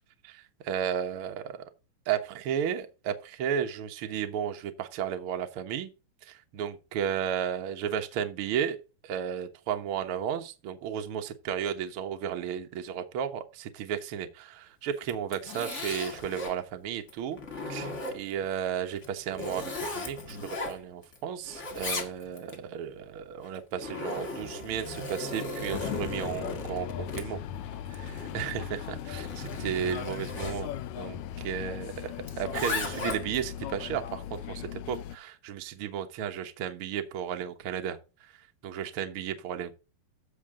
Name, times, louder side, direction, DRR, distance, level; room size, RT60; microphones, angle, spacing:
voice 1, 0.2-1.6 2.1-5.9 6.2-17.4 17.6-27.4 27.9-38.0 38.6-39.7, right 8 dB, 70° right, 1.3 m, -34 dB
Zipper (clothing), 15.0-16.6 17.1-18.4 18.9-21.2 21.4-22.6 23.4-30.6 32.2-33.4, left 2 dB, 35° left, 1.2 m, -37 dB
sound 1, 25.7-35.2, left 11 dB, 85° left, 1.6 m, -38 dB
14.5 x 5.8 x 3.8 m
omnidirectional pair, 4.2 m